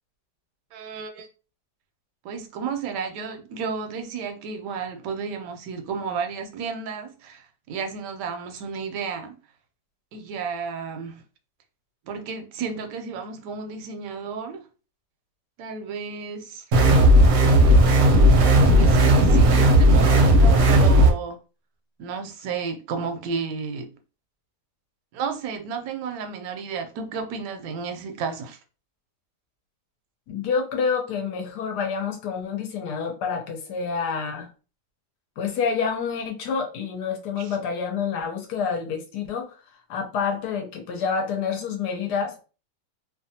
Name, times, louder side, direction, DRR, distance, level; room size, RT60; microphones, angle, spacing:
voice 1, 0.7-1.3 2.2-9.3 10.1-11.2 12.1-14.6 15.6-16.6 18.6-21.4 22.0-23.9 25.1-28.6 37.4-37.6, right 5 dB, 80° right, 1.2 m, -32 dB
sound 1, 16.7-21.1, right 1 dB, 60° right, 0.8 m, -15 dB
voice 2, 30.3-34.5 35.4-39.6 39.9-42.4, left 6 dB, 75° left, 1.2 m, -28 dB
2.9 x 2.3 x 2.7 m
omnidirectional pair, 1.8 m